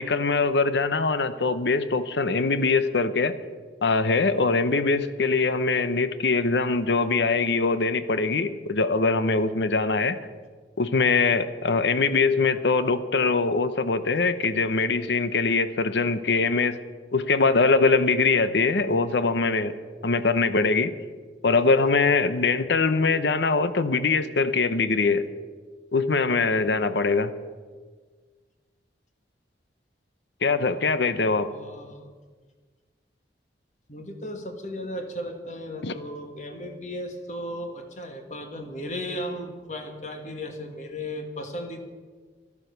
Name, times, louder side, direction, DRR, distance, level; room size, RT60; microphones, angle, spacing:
voice 1, 0.0-3.3 3.8-10.2 10.8-16.8 17.1-19.7 20.0-20.9 21.4-25.3 25.9-27.3 30.4-31.5 35.8-35.9, left 4 dB, 80° left, 12 dB, 0.8 m, -22 dB
voice 2, 31.0-32.1 33.9-41.8, equal, 40° left, 5 dB, 1.6 m, -36 dB
12.5 x 12.0 x 6.7 m, 1.5 s
head